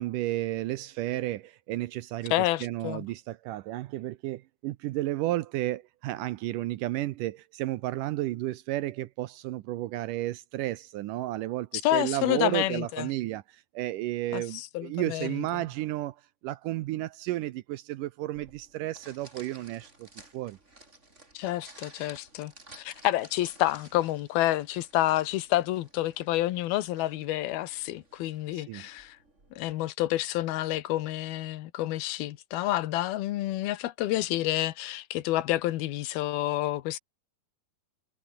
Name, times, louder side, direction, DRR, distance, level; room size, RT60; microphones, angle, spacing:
voice 1, 0.0-16.2 16.4-20.1 20.3-20.6 28.5-28.9, right 16 dB, 75° right, 2.1 m, -32 dB
voice 2, 2.3-3.0 11.8-13.1 14.3-15.4 21.3-29.2 29.6-37.0, left 15 dB, 90° left, 3.0 m, -29 dB
sound 1, 18.3-29.7, right 2 dB, 20° right, 5.0 m, -55 dB
omnidirectional pair, 4.2 m